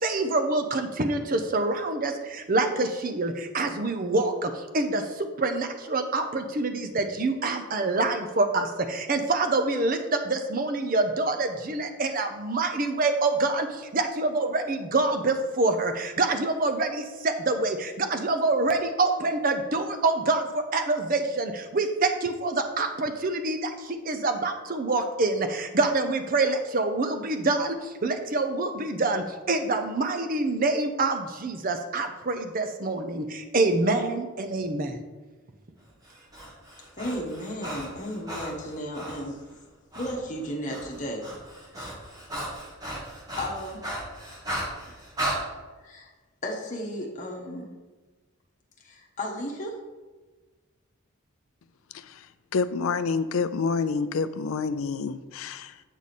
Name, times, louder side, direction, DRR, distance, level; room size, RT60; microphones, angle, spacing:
voice 1, 0.0-35.0, right 2 dB, 40° right, 7 dB, 0.6 m, -26 dB
Breathing, 36.0-39.3 39.9-40.2 40.4-45.4, right 1 dB, 15° right, 1.2 m, -35 dB
voice 2, 37.0-39.4 39.9-41.2 41.7-42.0 43.4-43.8 45.8-46.1 46.4-47.7 48.8-49.8, equal, 35° left, 0 dB, 1.1 m, -34 dB
voice 3, 51.9-52.3 52.5-55.8, left 4 dB, 70° left, 13 dB, 0.4 m, -28 dB
8.2 x 4.9 x 4.2 m, 1.3 s
head